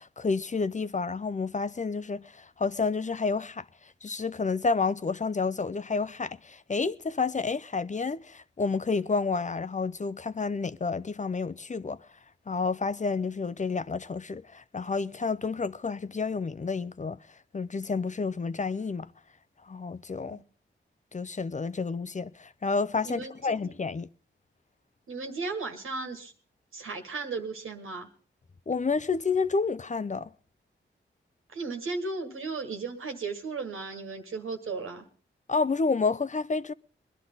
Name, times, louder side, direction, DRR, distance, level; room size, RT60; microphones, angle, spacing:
voice 1, 0.0-3.6 4.0-12.0 12.5-17.2 17.5-19.1 19.6-20.4 21.1-24.1 28.7-30.3 35.5-36.7, left 4 dB, 35° left, 0.6 m, -30 dB
voice 2, 23.0-23.6 25.1-26.3 26.7-28.1 31.5-35.1, right 4 dB, 85° right, 1.9 m, -35 dB
21.0 x 11.5 x 4.0 m
cardioid pair, 45°, 21 cm